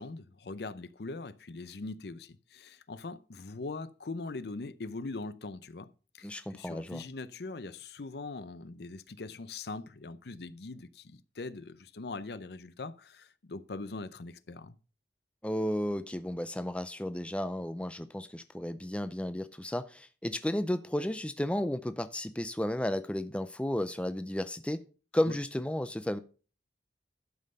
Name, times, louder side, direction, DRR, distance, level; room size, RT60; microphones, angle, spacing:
voice 1, 0.0-5.9 6.1-14.8 25.3-25.4, left 3 dB, 65° left, 0.6 m, -41 dB
voice 2, 6.2-7.0 15.4-24.8 25.1-26.2, left 1 dB, 5° left, 0.5 m, -33 dB
11.5 x 5.4 x 5.5 m
head